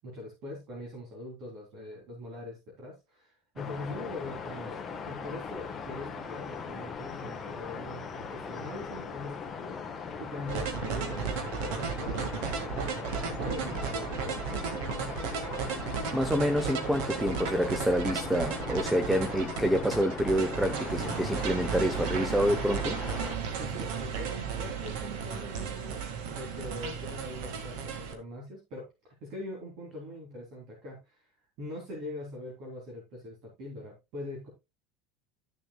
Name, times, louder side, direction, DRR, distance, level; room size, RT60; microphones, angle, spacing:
voice 1, 0.0-14.7 23.5-31.3 31.6-34.5, left 1 dB, 45° right, 3.4 m, -42 dB
sound 1, 3.6-23.4, left 5 dB, 15° left, 1.2 m, -40 dB
sound 2, 10.5-28.2, right 6 dB, 65° right, 1.9 m, -34 dB
voice 2, 15.8-23.0, equal, 5° right, 0.5 m, -28 dB
13.0 x 7.0 x 2.3 m
cardioid pair, 165°, 0 cm